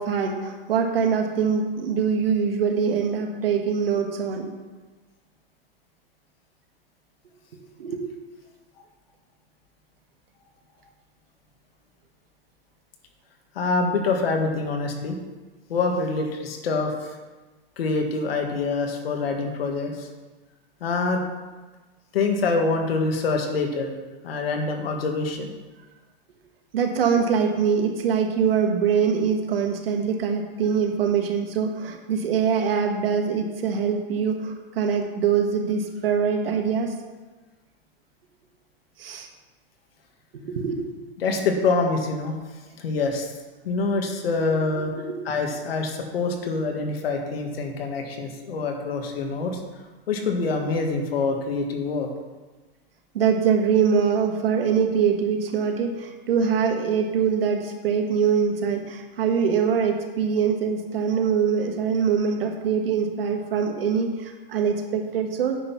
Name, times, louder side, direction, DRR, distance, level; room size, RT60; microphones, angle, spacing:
voice 1, 0.0-4.5 7.8-8.0 26.7-36.9 39.0-39.3 40.3-40.9 45.1-45.2 53.1-65.6, right 6 dB, 75° right, 3 dB, 1.7 m, -23 dB
voice 2, 13.6-15.2 15.7-17.2 17.8-20.1 20.8-21.2 22.1-23.9 24.2-25.5 41.2-42.3 42.8-43.3 43.6-44.9 45.3-49.6 50.1-52.1, left 3 dB, 85° left, 3 dB, 1.9 m, -25 dB
9.4 x 5.7 x 5.9 m, 1.3 s
supercardioid pair, 180°, 29 cm